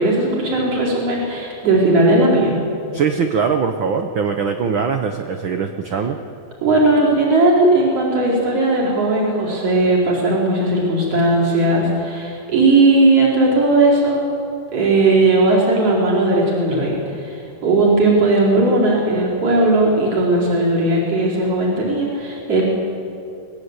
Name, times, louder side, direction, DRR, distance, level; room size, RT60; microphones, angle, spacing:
voice 1, 0.0-2.5 6.6-14.3 14.7-17.0 17.2-17.4 17.6-22.6, right 2 dB, 45° right, -4 dB, 5.4 m, -17 dB
voice 2, 2.9-6.2, right 6 dB, 85° right, 6 dB, 1.0 m, -21 dB
24.0 x 19.0 x 8.2 m, 2.6 s
omnidirectional pair, 3.7 m